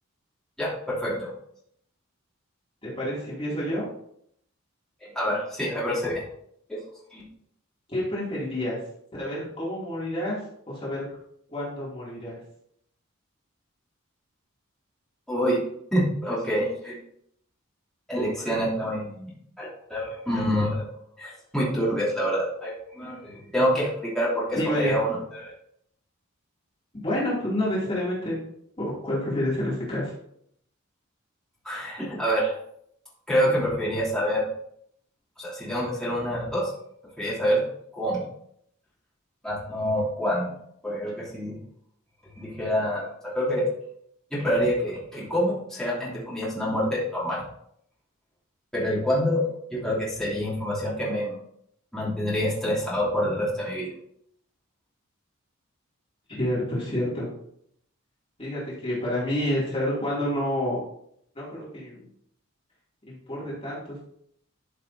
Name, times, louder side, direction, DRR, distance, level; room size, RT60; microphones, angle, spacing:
voice 1, 0.6-1.3 5.0-6.2 6.7-6.8 7.1-7.2 15.3-15.6 15.9-17.0 18.1-19.3 19.6-20.8 21.2-23.9 24.1-25.5 31.6-32.5 33.3-34.4 35.4-36.7 37.2-37.6 37.9-38.3 39.4-40.5 40.8-41.5 42.4-43.7 44.3-47.4 48.7-49.4 49.7-51.3 51.9-53.9, equal, 5° left, -9 dB, 3.1 m, -26 dB
voice 2, 2.8-3.9 7.9-8.8 9.1-10.4 10.7-11.1 11.5-12.4 24.5-25.0 26.9-28.4 28.8-30.1 56.3-57.3 58.4-60.8 61.4-62.1 63.1-64.0, left 1 dB, 25° left, -8 dB, 2.8 m, -28 dB
12.5 x 6.5 x 2.8 m, 0.71 s
head